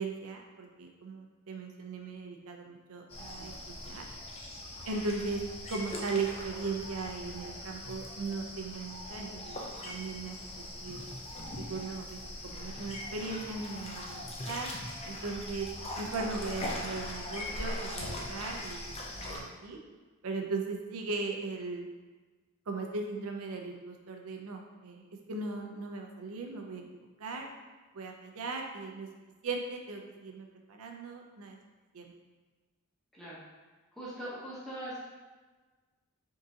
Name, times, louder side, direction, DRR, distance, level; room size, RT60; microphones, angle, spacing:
voice 1, 0.0-4.1 4.9-5.4 5.7-11.0 11.5-14.7 15.0-15.7 16.0-19.8 20.2-21.9 22.7-25.0 25.3-26.8 27.2-27.5 27.9-29.1 29.4-31.6 31.9-32.1, right 3 dB, 75° right, 2 dB, 0.5 m, -38 dB
sound 1, 3.1-19.4, left 1 dB, 25° left, 0.5 m, -41 dB
voice 2, 33.9-35.0, right 1 dB, ahead, -9 dB, 0.9 m, -41 dB
3.7 x 3.7 x 2.7 m, 1.3 s
head